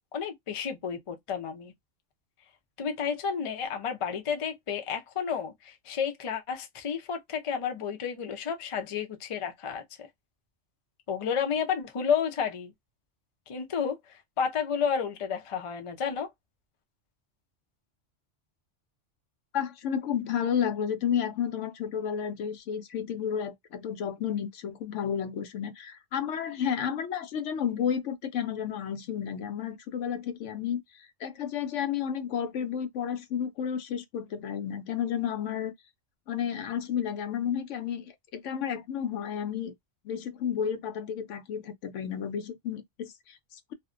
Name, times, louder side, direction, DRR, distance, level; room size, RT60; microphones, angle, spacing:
voice 1, 0.1-1.7 2.8-9.8 11.1-12.7 13.5-16.3, left 7 dB, 45° left, 0.4 m, -31 dB
voice 2, 19.5-35.7 36.3-38.0 38.3-39.7 40.0-43.7, left 8 dB, 85° left, 0.9 m, -32 dB
2.5 x 2.1 x 2.4 m
omnidirectional pair, 1.2 m